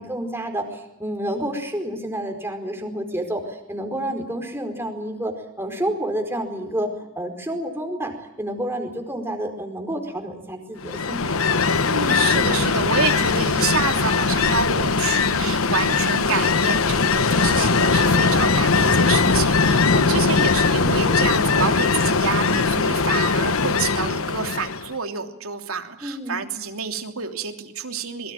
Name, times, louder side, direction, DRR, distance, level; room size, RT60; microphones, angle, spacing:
voice 1, 0.0-11.4 19.9-20.2 26.0-26.4, right 1 dB, 10° right, 4 dB, 4.6 m, -29 dB
Ocean, 10.8-24.9, left 4 dB, 75° left, 1.1 m, -20 dB
voice 2, 11.8-28.3, right 5 dB, 85° right, 5 dB, 3.0 m, -28 dB
26.5 x 22.5 x 7.6 m, 0.86 s
head